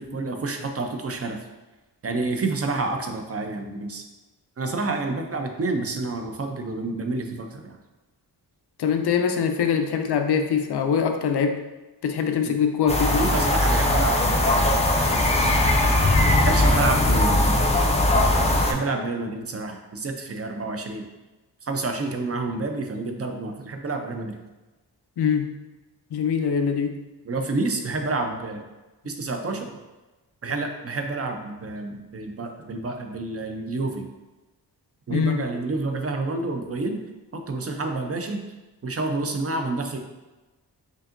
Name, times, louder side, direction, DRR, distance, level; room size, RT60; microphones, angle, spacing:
voice 1, 0.0-1.4 2.0-4.0 4.6-7.8 12.4-12.6 13.2-14.3 16.4-17.7 18.7-21.0 21.6-24.4 27.3-28.6 29.0-29.7 30.4-34.1 35.1-37.0 37.3-38.4 38.8-40.0, right 3 dB, 35° right, 4 dB, 0.5 m, -29 dB
voice 2, 8.8-11.6 12.0-13.2 25.2-25.5 26.1-27.0 35.1-35.5, left 7 dB, 75° left, 6 dB, 0.5 m, -23 dB
sound 1, 12.9-18.7, left 1 dB, 15° left, 0.4 m, -20 dB
5.3 x 2.6 x 2.5 m, 1.1 s
wide cardioid pair, 95°, 40 cm